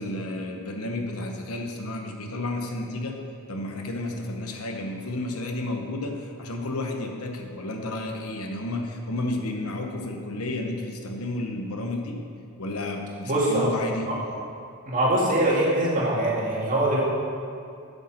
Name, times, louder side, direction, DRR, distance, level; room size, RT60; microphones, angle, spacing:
voice 1, 0.0-3.2 3.5-12.2 12.6-14.1, left 2 dB, 80° left, 3 dB, 1.1 m, -31 dB
voice 2, 13.2-13.7 14.1-14.2 14.9-17.0, right 1 dB, 40° right, -5 dB, 2.2 m, -23 dB
8.4 x 7.1 x 5.9 m, 2.5 s
head